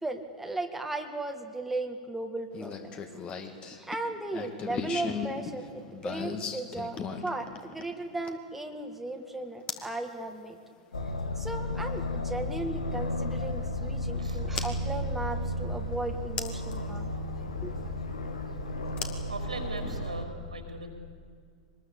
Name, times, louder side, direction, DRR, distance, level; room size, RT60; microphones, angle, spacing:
voice 1, 0.0-2.9 3.7-10.6 11.4-17.1 17.6-17.8, right 2 dB, 5° right, 3 dB, 2.0 m, -36 dB
sound 1, 2.5-8.5 9.7-9.9 11.8-11.9 14.6-14.7 16.4-16.8 19.0-20.0, left 6 dB, 30° left, 2.4 m, -37 dB
Aircraft, 10.9-20.3, left 1 dB, 80° left, 2.4 m, -33 dB
voice 2, 19.3-20.9, right 2 dB, 85° right, 4 dB, 5.2 m, -40 dB
24.5 x 20.5 x 8.7 m, 2.1 s
figure-of-eight pair, 100°, 4 cm